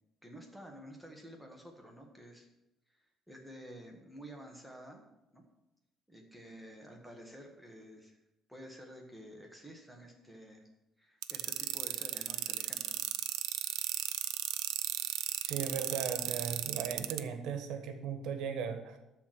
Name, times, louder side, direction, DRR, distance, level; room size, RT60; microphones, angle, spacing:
voice 1, 0.2-2.5 2.9-3.0 3.3-5.4 6.1-8.2 8.5-10.6 11.0-13.0, equal, ahead, 1 dB, 1.7 m, -51 dB
sound 1, 11.2-17.2, right 14 dB, 90° right, 0.6 m, -34 dB
voice 2, 15.4-19.0, right 6 dB, 70° right, 7 dB, 1.5 m, -37 dB
13.0 x 4.4 x 8.0 m, 0.90 s
cardioid pair, 155°, 0 cm